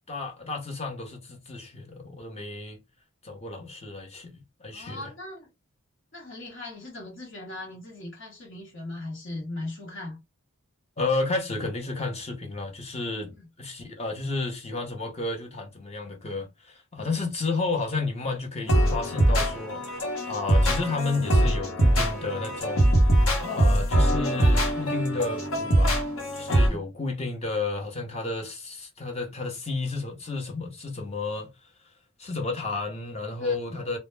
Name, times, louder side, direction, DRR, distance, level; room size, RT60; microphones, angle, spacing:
voice 1, 0.1-2.8 3.2-5.1 11.0-13.3 13.6-19.8 20.3-22.9 23.4-25.9 26.3-31.5 32.2-34.0, left 3 dB, 30° left, 0.7 m, -32 dB
voice 2, 4.7-5.5 6.1-10.2 13.3-13.5 17.0-17.2 26.5-26.8 33.4-33.8, left 2 dB, 60° left, 1.0 m, -39 dB
sound 1, 18.7-26.7, right 1 dB, 85° left, 0.9 m, -22 dB
2.1 x 2.1 x 3.1 m
head